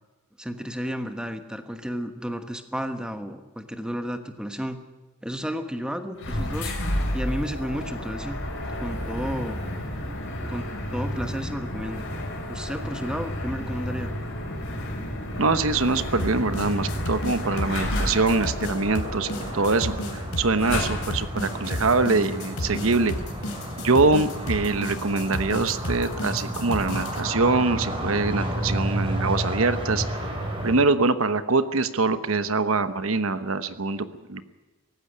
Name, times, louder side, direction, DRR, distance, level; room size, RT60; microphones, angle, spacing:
voice 1, 0.4-4.8 5.2-8.4 8.8-9.6 10.5-12.0 12.5-14.1, equal, 5° right, 7 dB, 1.2 m, -32 dB
sound 1, 6.2-21.4, left 1 dB, 55° left, 5.6 m, -31 dB
sound 2, 15.3-30.7, right 1 dB, 25° right, 4.4 m, -32 dB
voice 2, 15.4-23.1 23.8-30.0 30.6-34.4, right 3 dB, 65° right, 11 dB, 1.1 m, -24 dB
sound 3, 16.2-27.2, left 1 dB, 70° left, 3.2 m, -33 dB
18.0 x 15.5 x 9.7 m, 1.2 s
head